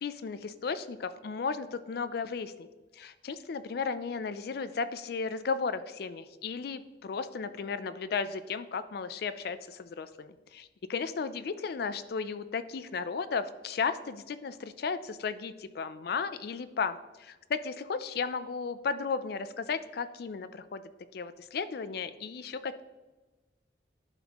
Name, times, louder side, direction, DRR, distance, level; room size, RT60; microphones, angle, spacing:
voice 1, 0.0-2.7 2.9-20.8 21.1-22.8, left 5 dB, 60° left, 13 dB, 0.4 m, -34 dB
11.5 x 4.2 x 2.9 m, 1.2 s
head